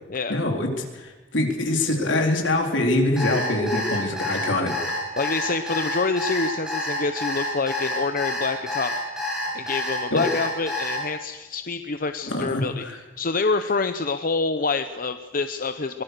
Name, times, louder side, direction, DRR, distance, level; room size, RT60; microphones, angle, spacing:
voice 1, 0.3-4.7 10.1-10.2 12.3-13.0, left 1 dB, 75° left, 2 dB, 4.0 m, -24 dB
Alarm, 3.2-11.0, left 1 dB, 5° right, 7.8 m, -28 dB
voice 2, 5.2-9.0 9.5-12.8 13.2-16.0, left 4 dB, 45° left, 9 dB, 0.8 m, -26 dB
23.5 x 20.5 x 6.7 m, 1.2 s
head